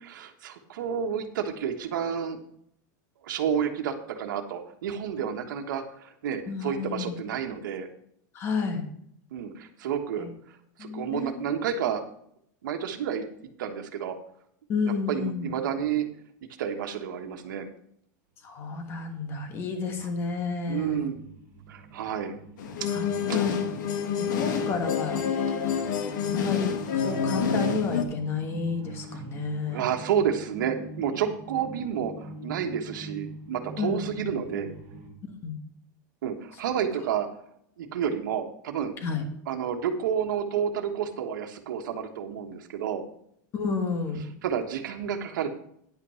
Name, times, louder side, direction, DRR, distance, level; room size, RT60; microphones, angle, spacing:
voice 1, 0.0-2.4 3.2-7.9 9.3-10.2 10.8-12.0 12.6-13.2 13.6-14.2 15.1-16.1 16.6-17.7 20.7-21.2 21.7-22.3 23.3-23.4 25.5-25.6 29.7-34.7 36.2-37.3 37.8-38.9 39.5-43.0 44.4-45.5, right 8 dB, 90° right, 4 dB, 1.3 m, -30 dB
voice 2, 6.5-7.2 8.3-8.8 10.2-10.3 10.8-11.4 14.7-15.5 18.4-21.0 22.9-23.6 24.2-25.2 26.2-29.9 33.8-34.3 35.4-35.6 39.0-39.3 43.5-44.3, left 4 dB, 25° left, 6 dB, 1.3 m, -31 dB
sound 1, 18.4-35.1, right 1 dB, 35° right, 2.5 m, -45 dB
sound 2, 22.6-28.0, left 7 dB, 75° left, 1.3 m, -28 dB
10.5 x 5.6 x 5.6 m, 0.69 s
supercardioid pair, 175°, 10 cm